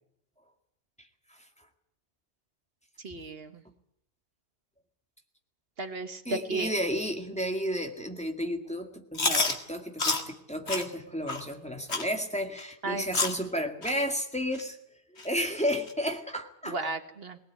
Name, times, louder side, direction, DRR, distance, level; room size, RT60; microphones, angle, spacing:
voice 1, 3.0-3.6 5.8-6.7 12.8-13.1 16.7-17.4, right 2 dB, 65° right, 9 dB, 1.5 m, -34 dB
voice 2, 6.3-14.8 15.1-16.8, equal, 5° left, 3 dB, 2.0 m, -32 dB
Chewing mastication, 9.1-9.5 10.0-10.2 10.7-10.8 11.3-11.4 11.9-12.1 12.6-12.7 13.1-13.4 13.8-13.9 14.5-14.6 15.2-15.3 15.9-16.0, left 3 dB, 85° left, 2.3 m, -28 dB
20.0 x 18.0 x 9.4 m, 0.74 s
omnidirectional pair, 1.1 m